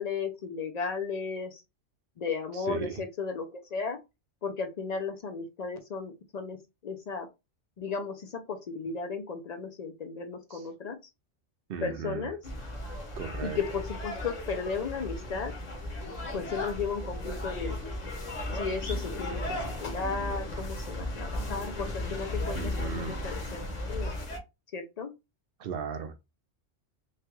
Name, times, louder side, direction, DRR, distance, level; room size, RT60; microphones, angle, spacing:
voice 1, 0.0-1.6 2.2-4.0 4.4-6.6 6.8-7.3 7.8-11.0 11.8-12.4 13.4-15.5 16.3-17.8 18.5-24.1 24.7-25.1, left 5 dB, 60° left, 0.4 m, -35 dB
voice 2, 2.6-2.9 10.5-10.6 11.7-12.3 13.1-13.6 22.6-23.2 25.6-26.1, right 6 dB, 60° right, 0.7 m, -36 dB
sound 1, 12.4-24.4, left 1 dB, 40° left, 0.8 m, -35 dB
3.1 x 2.3 x 2.9 m
omnidirectional pair, 1.2 m